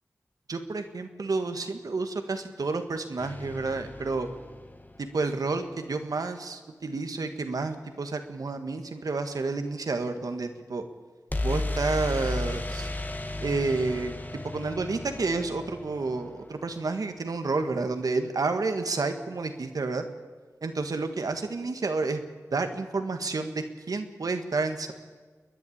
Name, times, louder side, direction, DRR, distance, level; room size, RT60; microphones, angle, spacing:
voice 1, 0.5-4.3 5.0-10.8 11.4-12.9 13.4-14.2 14.4-20.0 20.6-22.2 22.5-24.9, right 3 dB, 90° right, 7 dB, 1.7 m, -30 dB
sound 1, 3.2-5.2 11.3-17.1, left 2 dB, 30° left, 1.4 m, -34 dB
29.0 x 11.0 x 8.8 m, 1.4 s
cardioid pair, 45°, 6 cm